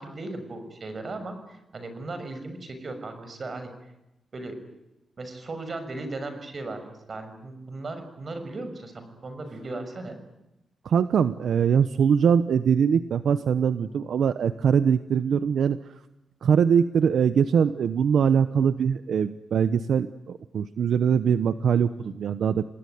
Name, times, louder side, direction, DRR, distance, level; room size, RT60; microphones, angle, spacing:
voice 1, 0.0-3.7 4.3-4.5 5.2-10.2, right 2 dB, 40° right, 8 dB, 6.4 m, -37 dB
voice 2, 10.8-15.8 16.4-22.6, right 7 dB, 75° right, 12 dB, 1.0 m, -22 dB
28.5 x 20.5 x 9.5 m, 0.94 s
wide cardioid pair, 120°, 0 cm